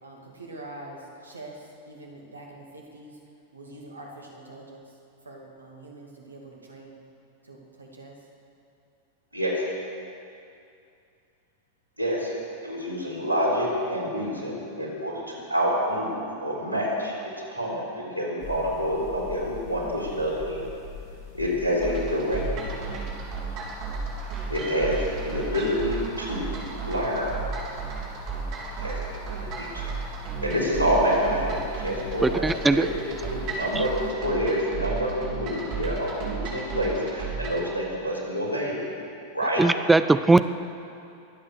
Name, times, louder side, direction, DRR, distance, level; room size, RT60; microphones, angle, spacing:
voice 1, 0.0-3.2 3.5-4.8 5.2-7.0 7.4-8.2, right 2 dB, 75° right, -1 dB, 2.5 m, -44 dB
voice 2, 9.3-9.6 12.0-12.3 12.6-15.2 15.5-17.1 17.5-20.7 21.3-22.7 24.5-27.4 28.8-29.8 30.4-38.8 39.3-39.7, equal, 90° left, -4 dB, 4.0 m, -27 dB
sound 1, 18.4-34.1, left 4 dB, 45° left, 2.5 m, -42 dB
sound 2, 21.8-37.7, right 5 dB, 40° right, 3.4 m, -34 dB
voice 3, 32.2-32.9 33.8-33.9 39.6-40.4, right 3 dB, 10° right, 12 dB, 0.4 m, -19 dB
23.0 x 8.6 x 6.5 m, 2.6 s
figure-of-eight pair, 90°, 0 cm